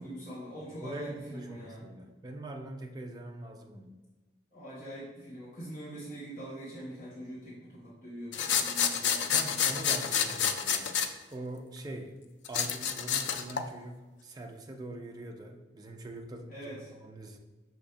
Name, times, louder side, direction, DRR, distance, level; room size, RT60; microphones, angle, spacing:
voice 1, 0.0-1.8 4.5-10.1 16.5-16.9, right 1 dB, 45° left, -9 dB, 1.1 m, -43 dB
voice 2, 0.6-3.9 9.3-10.9 11.3-12.2 12.5-17.4, right 1 dB, 20° right, 3 dB, 0.3 m, -43 dB
sound 1, 8.3-11.1 12.4-13.7, left 7 dB, 75° left, 0.3 m, -29 dB
5.6 x 2.5 x 3.2 m, 1.2 s
head